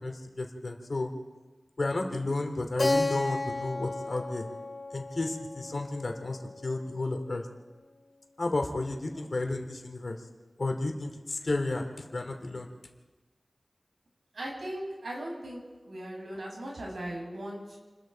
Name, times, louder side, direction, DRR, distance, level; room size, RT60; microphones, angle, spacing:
voice 1, 0.0-1.1 1.8-4.5 4.9-7.4 8.4-10.2 10.6-12.7, left 2 dB, 55° left, 4 dB, 2.7 m, -32 dB
Keyboard (musical), 2.8-7.3, left 2 dB, 35° left, 3.1 m, -33 dB
voice 2, 14.3-15.6 15.9-17.8, right 1 dB, 80° right, -2 dB, 7.3 m, -38 dB
29.0 x 21.5 x 4.6 m, 1.3 s
wide cardioid pair, 80°, 0 cm